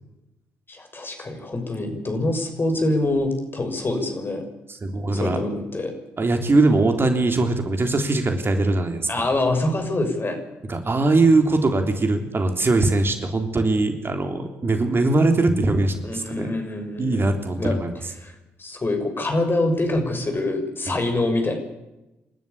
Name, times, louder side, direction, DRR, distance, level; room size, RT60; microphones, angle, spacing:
voice 1, 0.7-4.4 5.1-5.9 9.1-10.4 16.0-17.8 18.2-18.3 18.6-21.6, left 2 dB, 35° left, 5 dB, 6.4 m, -25 dB
voice 2, 4.7-5.4 6.2-9.1 10.7-16.5 17.0-18.0 20.9-21.0, right 2 dB, 35° right, 5 dB, 3.6 m, -21 dB
27.5 x 13.0 x 8.6 m, 0.97 s
figure-of-eight pair, 40°, 7 cm